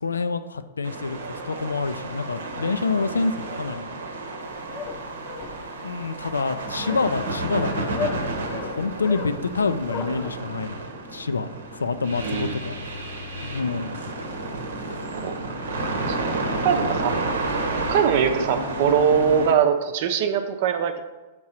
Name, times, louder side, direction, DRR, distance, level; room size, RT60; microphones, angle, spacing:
voice 1, 0.0-4.0 5.8-8.2 8.5-12.9 13.4-14.0, left 4 dB, 90° left, 11 dB, 0.4 m, -27 dB
sound 1, 0.8-19.5, right 2 dB, 75° right, 0.9 m, -31 dB
sound 2, 4.4-10.3, left 6 dB, 35° left, 0.7 m, -35 dB
voice 2, 12.2-12.6 15.1-15.4 16.1-16.3 16.6-17.2 17.9-21.0, right 7 dB, 55° right, 8 dB, 0.6 m, -22 dB
6.1 x 3.7 x 4.3 m, 1.2 s
hypercardioid pair, 115°, 0 cm